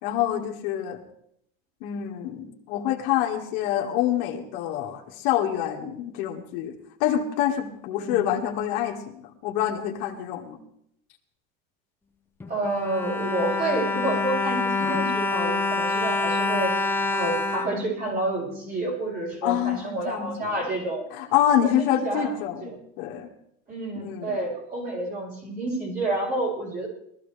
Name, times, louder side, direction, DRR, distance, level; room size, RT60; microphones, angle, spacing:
voice 1, 0.0-1.0 1.8-6.7 7.0-10.6 19.4-20.6 21.1-23.3 23.9-24.4, left 11 dB, 65° left, 2 dB, 2.0 m, -26 dB
voice 2, 7.9-8.3 12.5-16.8 17.1-21.1 21.6-22.3 22.6-22.7 23.7-26.9, right 2 dB, 30° right, -3 dB, 6.6 m, -29 dB
Bowed string instrument, 12.4-18.6 19.3-19.4 19.7-19.9, left 3 dB, 5° left, 0.7 m, -27 dB
22.5 x 14.5 x 3.4 m, 0.72 s
cardioid pair, 165°, 30 cm